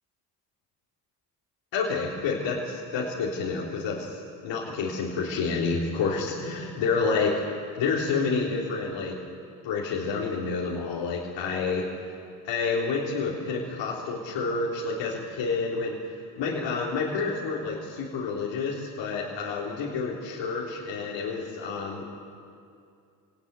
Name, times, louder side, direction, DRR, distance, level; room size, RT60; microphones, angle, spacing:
voice 1, 1.7-7.4 7.8-9.2 9.6-12.2 12.4-16.0 16.4-22.0, left 4 dB, 75° left, -5 dB, 3.7 m, -29 dB
24.0 x 19.0 x 9.3 m, 2.4 s
supercardioid pair, 55°, 45 cm